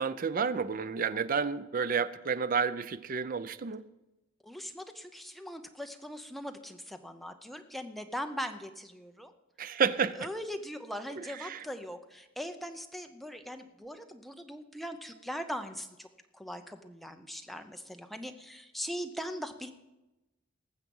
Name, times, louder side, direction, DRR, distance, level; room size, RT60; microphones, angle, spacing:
voice 1, 0.0-3.8 9.6-10.3 11.2-11.6, right 6 dB, 45° right, 15 dB, 0.5 m, -30 dB
voice 2, 4.4-9.3 9.6-9.8 10.1-16.1 16.3-19.7, equal, ahead, 6 dB, 0.7 m, -40 dB
19.0 x 7.3 x 5.4 m, 1.0 s
head